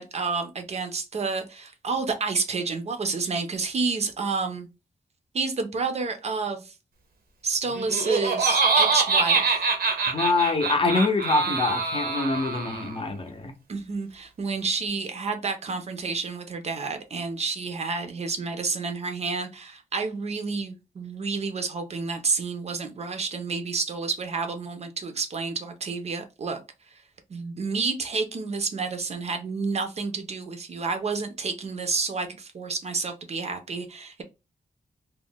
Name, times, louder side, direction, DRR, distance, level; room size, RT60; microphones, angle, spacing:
voice 1, 0.0-4.7 5.3-6.7 7.4-9.6 13.7-26.6 27.3-34.2, right 4 dB, 45° right, 0.5 m, -29 dB
Laughter, 7.7-13.0, right 4 dB, 85° right, 0.7 m, -24 dB
voice 2, 10.1-13.6, left 3 dB, 35° left, 0.6 m, -25 dB
2.4 x 2.1 x 3.5 m
wide cardioid pair, 165°, 15 cm